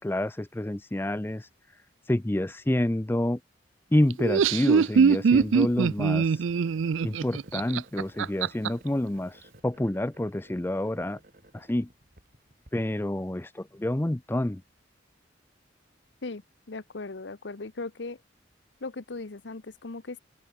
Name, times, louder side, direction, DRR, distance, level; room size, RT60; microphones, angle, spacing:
voice 1, 0.0-1.5 2.1-3.4 3.9-6.4 7.0-11.2 11.5-11.9 12.7-14.6, left 1 dB, 10° left, 0.5 m, -28 dB
Laughter, 4.1-8.7, right 5 dB, 85° right, 0.4 m, -22 dB
sound 1, 5.3-12.7, right 1 dB, 45° right, 5.8 m, -54 dB
voice 2, 16.7-18.2 18.8-20.2, left 3 dB, 65° left, 0.9 m, -38 dB
open air
head